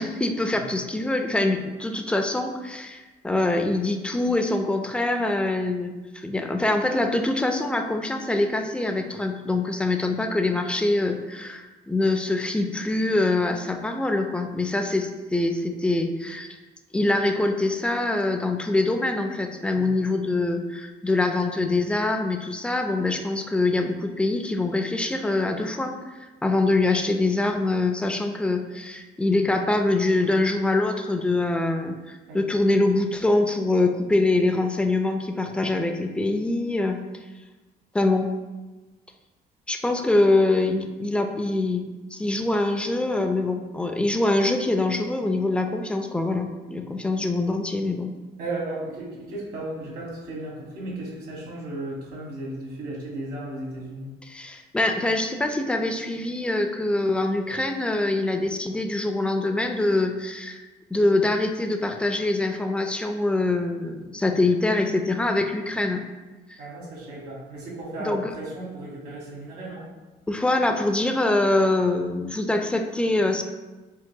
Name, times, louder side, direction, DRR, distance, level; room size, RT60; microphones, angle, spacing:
voice 1, 0.0-16.5 16.9-37.0 37.9-38.3 39.7-41.9 42.1-48.1 54.2-60.6 60.9-66.0 66.5-66.6 68.0-68.3 70.3-73.4, left 2 dB, 5° left, 5 dB, 0.3 m, -24 dB
voice 2, 48.4-54.1 66.6-69.9, right 2 dB, 65° right, -3 dB, 1.4 m, -35 dB
4.5 x 3.7 x 2.2 m, 1.2 s
cardioid pair, 110°, 17 cm